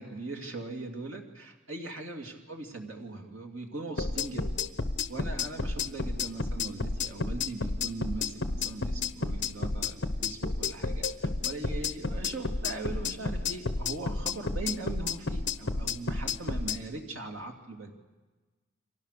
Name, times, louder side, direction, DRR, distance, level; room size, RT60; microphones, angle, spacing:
voice 1, 0.0-4.6 5.1-17.9, right 2 dB, 85° right, 3 dB, 2.8 m, -40 dB
sound 1, 4.0-16.8, left 4 dB, 60° left, 1.1 m, -31 dB
30.0 x 24.0 x 6.8 m, 1.3 s
head